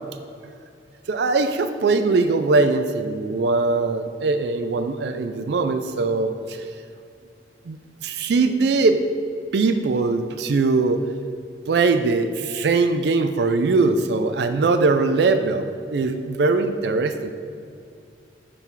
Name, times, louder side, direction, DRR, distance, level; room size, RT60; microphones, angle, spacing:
voice 1, 1.1-6.7 7.7-9.0 9.5-11.0 11.7-17.3, right 3 dB, 65° right, 8 dB, 0.4 m, -21 dB
9.6 x 3.8 x 4.6 m, 2.5 s
head